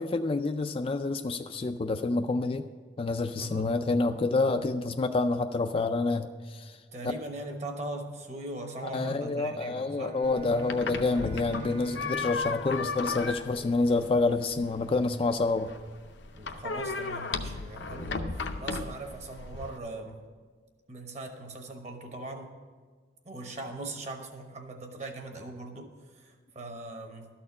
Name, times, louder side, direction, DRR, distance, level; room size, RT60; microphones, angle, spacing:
voice 1, 0.0-2.6 3.0-6.7 8.9-15.7, left 3 dB, 30° left, 8 dB, 0.3 m, -28 dB
voice 2, 3.4-3.7 6.9-10.2 11.1-11.2 16.3-18.3 18.6-20.2 20.9-22.5 23.2-27.3, right 2 dB, 35° right, 4 dB, 1.1 m, -40 dB
Bowed string instrument, 9.9-14.0, right 2 dB, 55° right, 1.8 m, -45 dB
sound 1, 10.2-19.8, left 4 dB, 70° left, 0.6 m, -36 dB
12.5 x 4.3 x 8.4 m, 1.5 s
head